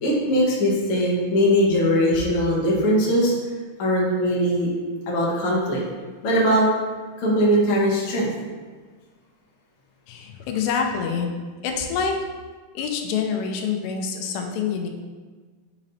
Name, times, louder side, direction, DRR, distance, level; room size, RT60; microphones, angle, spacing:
voice 1, 0.0-3.3 3.8-4.7 5.1-5.8 6.2-6.7 7.2-8.3, equal, 70° left, -5 dB, 1.3 m, -20 dB
voice 2, 10.1-11.3 11.6-12.2 12.7-14.9, left 6 dB, 85° left, 3 dB, 2.8 m, -26 dB
9.6 x 4.1 x 2.7 m, 1.4 s
omnidirectional pair, 4.8 m